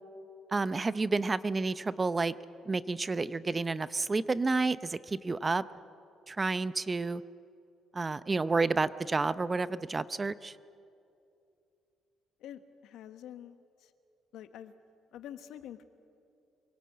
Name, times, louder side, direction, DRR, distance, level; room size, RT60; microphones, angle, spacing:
voice 1, 0.5-2.3 2.7-5.6 6.3-7.2 7.9-10.5, right 3 dB, 25° right, 16 dB, 0.7 m, -30 dB
voice 2, 12.4-13.9 14.3-14.7 15.1-15.8, left 10 dB, 75° left, 10 dB, 1.2 m, -47 dB
25.0 x 17.5 x 8.6 m, 2.6 s
supercardioid pair, 80°, 0 cm